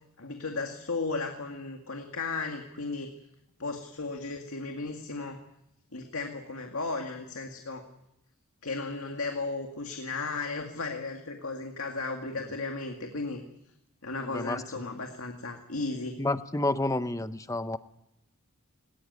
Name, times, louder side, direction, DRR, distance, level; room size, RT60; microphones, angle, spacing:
voice 1, 0.2-3.1 3.6-5.4 5.9-7.8 8.6-13.4 14.0-16.2, left 3 dB, 80° left, 3 dB, 2.1 m, -35 dB
voice 2, 14.2-14.6 16.2-17.8, left 2 dB, 15° left, 11 dB, 0.8 m, -30 dB
19.5 x 19.0 x 9.5 m, 0.83 s
head